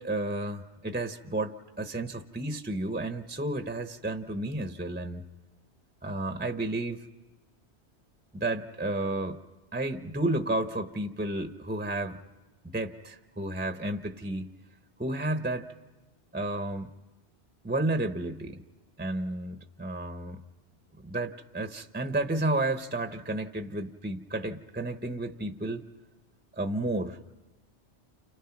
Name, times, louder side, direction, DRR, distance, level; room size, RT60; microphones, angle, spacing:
voice 1, 0.0-5.3 6.0-7.0 8.3-9.4 9.7-12.2 12.6-14.5 15.0-15.7 16.3-16.9 17.6-18.6 19.0-20.4 21.0-25.8 26.6-27.3, right 2 dB, 10° right, 8 dB, 0.8 m, -32 dB
29.5 x 29.0 x 5.9 m, 1.2 s
omnidirectional pair, 1.1 m